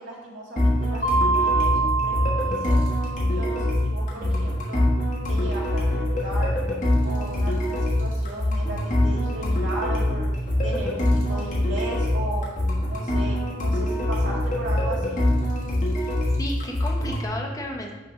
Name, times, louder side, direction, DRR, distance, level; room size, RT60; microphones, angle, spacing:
voice 1, 0.0-2.8 3.3-4.9 5.3-6.6 7.0-10.3 10.6-12.5 12.9-15.2, right 1 dB, 80° right, -6 dB, 1.6 m, -36 dB
sound 1, 0.6-17.2, left 1 dB, 40° left, 1.4 m, -24 dB
Mallet percussion, 1.0-3.6, right 4 dB, 55° left, 1.2 m, -25 dB
voice 2, 3.6-4.4 16.4-17.9, left 1 dB, 20° left, 0 dB, 0.7 m, -34 dB
6.2 x 3.4 x 5.7 m, 1.3 s
head